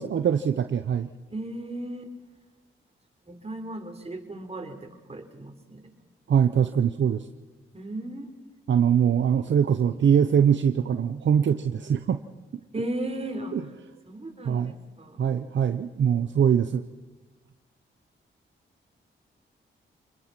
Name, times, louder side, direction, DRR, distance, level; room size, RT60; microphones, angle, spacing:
voice 1, 0.0-1.1 6.3-7.2 8.7-12.2 13.5-13.6 14.4-14.7 15.2-16.8, right 8 dB, 65° right, 9 dB, 0.8 m, -22 dB
voice 2, 1.3-2.3 3.3-5.9 7.7-8.3 12.7-13.6 14.1-15.2, right 1 dB, 30° right, 4 dB, 4.0 m, -36 dB
26.5 x 21.0 x 6.0 m, 1.2 s
cardioid pair, 60°, 21 cm